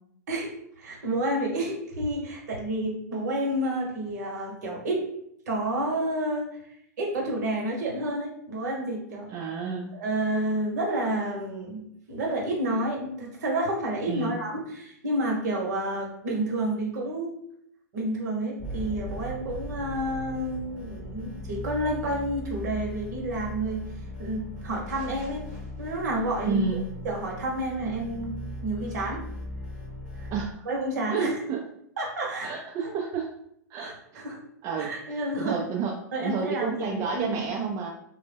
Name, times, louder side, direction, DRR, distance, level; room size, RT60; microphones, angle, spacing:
voice 1, 0.8-5.0 5.5-6.5 7.0-9.3 9.9-17.3 17.9-23.9 24.2-26.6 27.0-29.2 30.2-30.3 30.6-31.4 32.0-32.5 32.8-32.9 33.8-34.4 34.8-35.6 36.1-37.7, right 1 dB, 65° right, 0 dB, 0.9 m, -30 dB
voice 2, 9.3-9.9 14.1-14.4 26.4-26.9 30.3-30.6 31.1-31.6 32.4-33.3 33.7-34.2 34.6-37.9, right 5 dB, 30° right, 0 dB, 0.4 m, -31 dB
sound 1, 18.6-30.5, left 1 dB, 5° right, 1.0 m, -38 dB
2.1 x 2.1 x 3.3 m, 0.72 s
hypercardioid pair, 110°, 10 cm